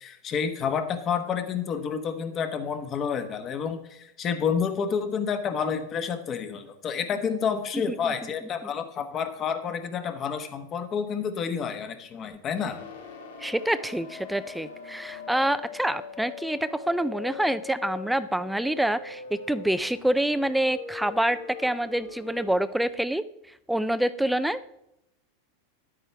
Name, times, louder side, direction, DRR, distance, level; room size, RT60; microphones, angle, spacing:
voice 1, 0.0-12.8, left 6 dB, 30° left, 9 dB, 1.1 m, -29 dB
sound 1, 12.6-22.5, left 5 dB, 80° left, 1.7 m, -42 dB
voice 2, 13.4-23.3 23.7-24.6, right 1 dB, 5° right, 14 dB, 0.3 m, -26 dB
10.5 x 8.8 x 3.4 m, 0.81 s
hypercardioid pair, 125°, 0 cm